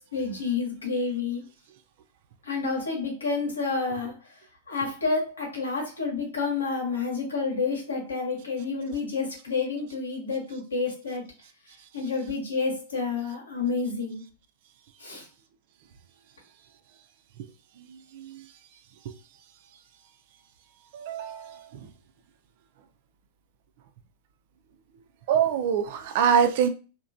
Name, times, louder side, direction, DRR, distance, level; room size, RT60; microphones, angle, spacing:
voice 1, 0.1-1.4 2.4-4.4 4.7-11.3 11.9-14.2 15.0-15.3, left 4 dB, 75° left, 1.0 m, -29 dB
voice 2, 20.9-21.6 25.3-26.7, right 8 dB, 50° right, 0.4 m, -23 dB
2.9 x 2.1 x 2.5 m
figure-of-eight pair, 95°, 0 cm